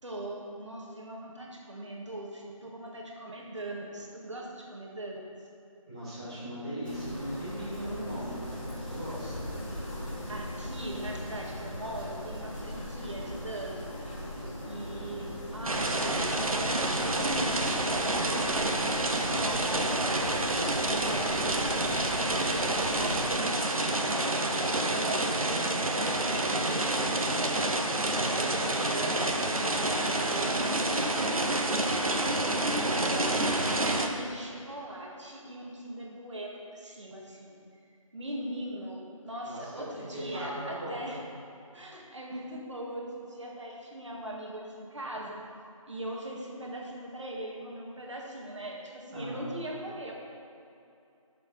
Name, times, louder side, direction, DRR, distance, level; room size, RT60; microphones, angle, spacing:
voice 1, 0.0-5.3 10.3-13.9 14.6-19.0 19.4-24.3 24.8-32.3 33.0-37.6 37.8-41.2 41.7-45.4 45.9-50.1, right 1 dB, 60° right, -1 dB, 1.9 m, -40 dB
voice 2, 5.9-8.4 8.6-9.3 19.2-19.5 32.7-33.2 39.4-39.8 40.1-41.1 49.1-49.5, equal, 10° right, -13 dB, 1.9 m, -38 dB
sound 1, 6.8-23.3, equal, 15° left, 2.6 m, -39 dB
sound 2, 15.6-34.1, right 2 dB, 80° right, 1.2 m, -28 dB
12.5 x 7.0 x 4.1 m, 2.6 s
figure-of-eight pair, 180°, 18 cm